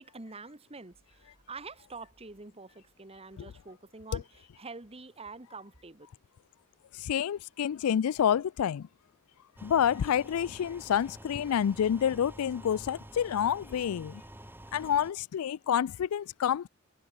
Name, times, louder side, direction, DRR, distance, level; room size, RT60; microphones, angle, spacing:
voice 1, 0.0-6.1, right 3 dB, 25° right, 1.5 m, -46 dB
voice 2, 6.9-8.9 9.6-14.2 14.7-16.7, left 9 dB, 85° left, 0.4 m, -28 dB
sound 1, 9.6-15.1, right 1 dB, 10° right, 5.1 m, -49 dB
head